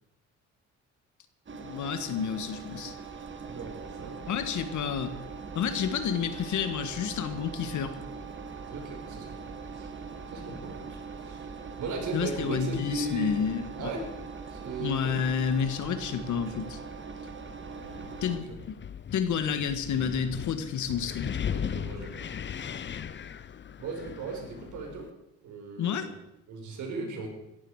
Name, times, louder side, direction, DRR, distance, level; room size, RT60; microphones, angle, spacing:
voice 1, 1.5-3.0 4.3-5.2 5.6-8.0 12.1-13.9 14.8-16.8 18.2-18.8 19.1-21.5 25.8-26.1, left 7 dB, 75° left, 10 dB, 1.7 m, -30 dB
Engine, 1.5-18.4, right 5 dB, 40° right, 1.9 m, -41 dB
voice 2, 3.4-4.2 8.7-9.9 10.3-11.5 11.8-13.4 13.8-14.0 14.5-15.2 18.3-18.4 21.5-22.4 23.8-25.1 25.4-26.1 26.5-27.3, right 3 dB, 80° right, 2 dB, 5.0 m, -37 dB
Wind, 17.8-25.1, left 8 dB, 40° left, 0.7 m, -38 dB
17.0 x 14.0 x 4.9 m, 0.88 s
cardioid pair, 90°, 30 cm